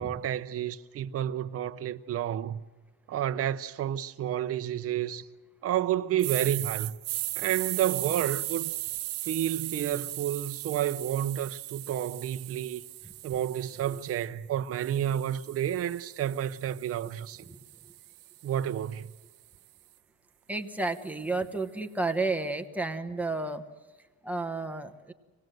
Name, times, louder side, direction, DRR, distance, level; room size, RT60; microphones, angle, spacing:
voice 1, 0.0-2.6 3.1-5.3 5.6-6.9 7.4-8.7 9.2-12.8 13.2-17.5 18.4-19.1, right 11 dB, 40° right, 0.7 m, -30 dB
sound 1, 6.2-14.3 14.7-18.9, right 18 dB, 85° right, 0.9 m, -37 dB
voice 2, 20.5-23.6 24.2-25.1, right 3 dB, 5° right, 1.1 m, -31 dB
26.0 x 18.5 x 7.8 m
cardioid pair, 160°, 38 cm